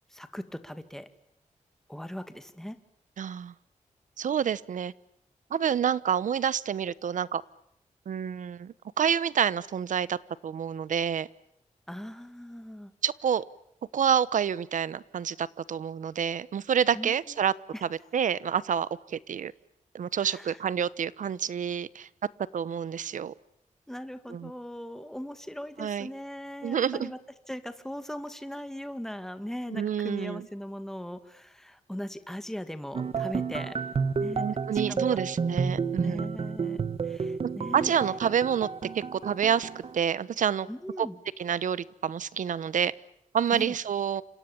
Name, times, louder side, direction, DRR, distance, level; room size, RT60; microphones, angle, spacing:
voice 1, 0.1-1.1 1.9-2.8 11.9-12.9 16.9-17.4 17.7-17.8 20.2-20.6 23.9-27.2 27.5-33.8 34.1-35.2 36.0-37.9 40.7-41.2 43.5-43.8, equal, 5° left, 10 dB, 2.0 m, -39 dB
voice 2, 3.2-3.5 4.2-4.9 5.5-7.4 8.1-10.2 10.4-11.3 13.0-13.4 13.9-17.5 17.8-19.5 19.9-22.1 22.5-23.3 24.3-24.5 25.8-26.1 26.6-27.1 29.7-30.5 34.4-36.2 37.7-38.7 38.9-40.7 41.0-41.1 41.4-42.9 43.3-44.2, right 8 dB, 80° right, 19 dB, 1.0 m, -28 dB
sound 1, 32.9-40.0, right 5 dB, 50° right, 1.4 m, -31 dB
29.5 x 27.0 x 7.2 m, 0.74 s
wide cardioid pair, 175°, 13 cm